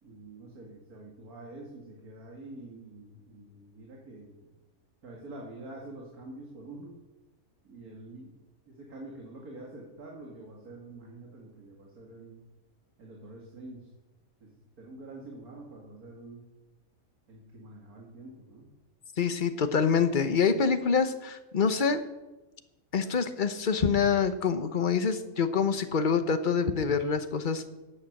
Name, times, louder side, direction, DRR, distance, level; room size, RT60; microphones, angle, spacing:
voice 1, 0.0-4.4 5.0-6.9 7.6-8.4 8.7-12.4 13.0-13.9 14.4-16.5 17.3-18.7, right 2 dB, 80° right, -1 dB, 2.4 m, -46 dB
voice 2, 19.2-22.0 22.9-27.7, left 6 dB, 40° left, 10 dB, 0.9 m, -26 dB
12.0 x 8.6 x 7.6 m, 1.1 s
omnidirectional pair, 1.5 m